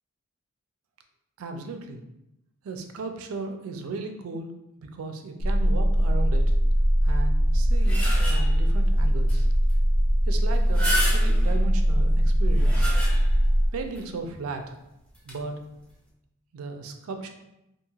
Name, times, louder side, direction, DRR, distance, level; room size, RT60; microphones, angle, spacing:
voice 1, 1.4-2.0 2.6-4.5 4.8-6.4 7.0-9.5 10.3-12.9 13.7-14.6 15.2-15.5 16.5-17.3, right 3 dB, 80° right, 6 dB, 0.4 m, -36 dB
sound 1, 5.4-13.7, equal, 50° left, 0.6 m, -21 dB
sound 2, 7.5-8.7 9.3-9.4 9.7-9.8 10.5-11.6 12.3-13.5 14.0-14.1 15.1-15.3, equal, 5° left, 0.5 m, -31 dB
3.0 x 2.4 x 2.3 m, 0.87 s
head